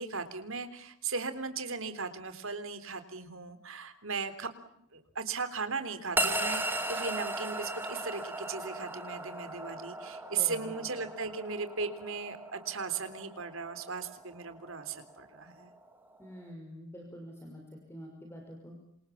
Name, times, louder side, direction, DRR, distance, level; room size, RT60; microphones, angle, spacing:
voice 1, 0.0-4.5 4.9-15.7, right 5 dB, 60° right, 10 dB, 3.6 m, -37 dB
sound 1, 6.2-16.5, right 1 dB, 10° right, 3.6 m, -37 dB
voice 2, 10.3-10.9 16.2-17.6 17.9-18.7, equal, 10° left, 1 dB, 6.1 m, -46 dB
28.5 x 27.5 x 7.3 m, 0.73 s
head